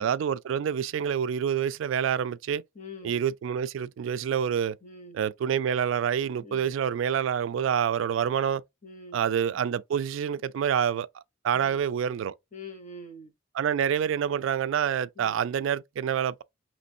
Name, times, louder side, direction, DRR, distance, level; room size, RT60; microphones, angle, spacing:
voice 1, 0.0-2.6 3.0-4.8 5.1-8.6 9.1-12.3 13.6-16.4, right 8 dB, 70° right, 0.3 m, -27 dB
voice 2, 2.7-3.2 4.8-5.2 6.4-6.7 8.8-9.2 11.5-11.8 12.5-13.3 15.2-15.4, left 2 dB, 35° left, 0.8 m, -44 dB
5.1 x 3.1 x 2.6 m
head